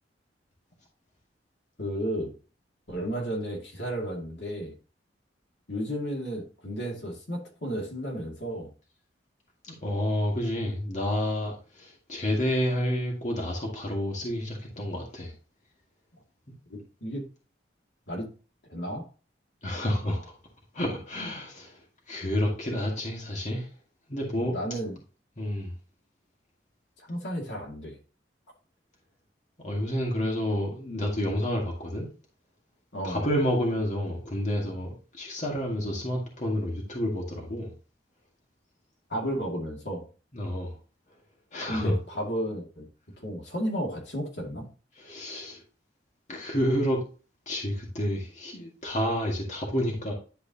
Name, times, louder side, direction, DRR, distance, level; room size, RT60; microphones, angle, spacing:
voice 1, 1.8-2.3 2.9-4.7 5.7-8.7 16.7-17.3 18.1-18.3 18.7-19.1 24.4-25.0 27.0-28.0 32.9-33.2 39.1-40.0 41.7-42.9 43.2-44.7, equal, 75° left, -1 dB, 2.3 m, -33 dB
voice 2, 9.6-15.3 19.6-20.3 20.7-21.8 22.1-23.7 24.1-24.6 25.4-25.7 29.6-32.1 33.0-37.7 40.3-40.7 41.5-41.9 45.0-45.6 46.3-47.0 47.5-50.1, equal, 40° left, -1 dB, 1.9 m, -29 dB
10.5 x 4.8 x 2.8 m, 0.35 s
head